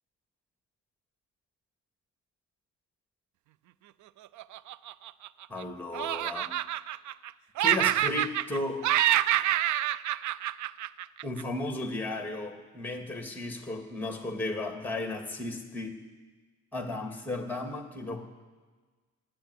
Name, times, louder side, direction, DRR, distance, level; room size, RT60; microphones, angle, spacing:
Laughter, 4.4-5.6 5.9-7.3 7.6-8.6 8.8-11.4, right 13 dB, 70° right, 0.5 m, -27 dB
voice 1, 5.5-6.5 7.6-8.8 11.2-16.0 16.7-18.2, left 2 dB, 5° left, 4 dB, 2.2 m, -34 dB
15.0 x 9.0 x 9.7 m, 1.4 s
cardioid pair, 90°, 30 cm